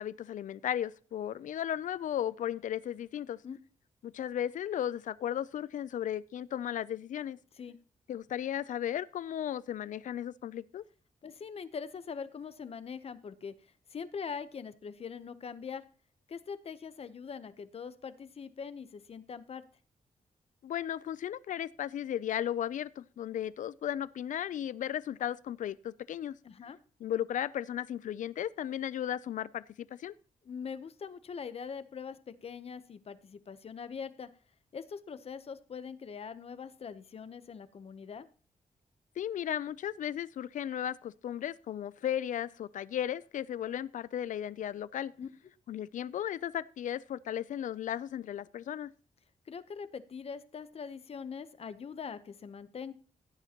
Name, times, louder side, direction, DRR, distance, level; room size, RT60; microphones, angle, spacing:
voice 1, 0.0-3.4 4.0-7.4 8.1-10.8 20.6-26.3 27.0-30.1 39.2-45.1 45.7-48.9, left 10 dB, 65° left, 0.4 m, -35 dB
voice 2, 11.2-13.5 13.9-15.8 16.3-19.6 26.4-26.8 30.4-34.3 34.7-38.3 45.2-45.3 49.5-52.9, left 6 dB, 45° left, 0.8 m, -42 dB
15.5 x 9.8 x 2.9 m
wide cardioid pair, 135°, 14 cm